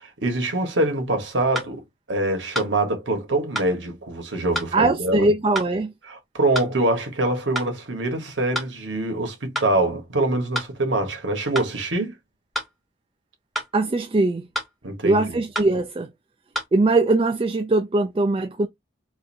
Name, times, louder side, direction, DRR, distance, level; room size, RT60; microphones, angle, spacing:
voice 1, 0.0-1.8 2.1-5.3 6.1-12.1 14.8-15.4, right 2 dB, 90° right, 1.4 m, -24 dB
sound 1, 1.6-1.7 2.6-2.7 3.6-3.7 4.6-4.7 5.6-5.7 6.6-6.7 7.6-7.7 8.6-8.7 9.6-9.7 10.6-10.7 11.6-11.7 12.6-12.7 13.6-13.7 14.6-14.7 15.6-15.7 16.6-16.7, equal, ahead, 0.9 m, -28 dB
voice 2, 4.7-5.9 13.7-14.5 15.0-16.1 16.7-18.7, right 2 dB, 30° right, 0.3 m, -21 dB
4.6 x 2.6 x 2.6 m
head